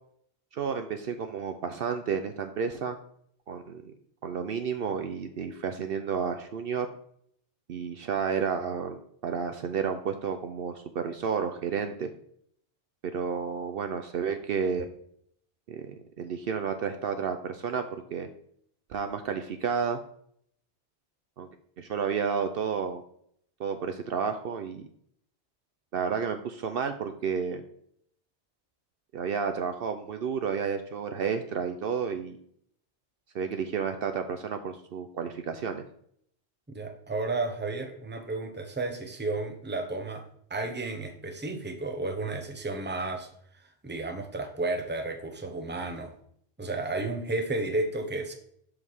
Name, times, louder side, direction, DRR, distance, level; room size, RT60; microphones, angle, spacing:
voice 1, 0.5-3.0 3.5-3.9 4.2-6.9 7.7-12.1 13.1-14.9 15.7-18.3 18.9-20.0 21.4-21.5 21.8-23.0 23.6-24.9 25.9-27.6 29.1-32.4 33.3-35.8, right 6 dB, 65° right, 8 dB, 0.8 m, -31 dB
voice 2, 36.7-40.2 40.5-43.3 43.8-46.1 46.6-48.3, right 2 dB, 10° right, 5 dB, 0.8 m, -32 dB
5.4 x 4.9 x 6.2 m, 0.66 s
omnidirectional pair, 1.1 m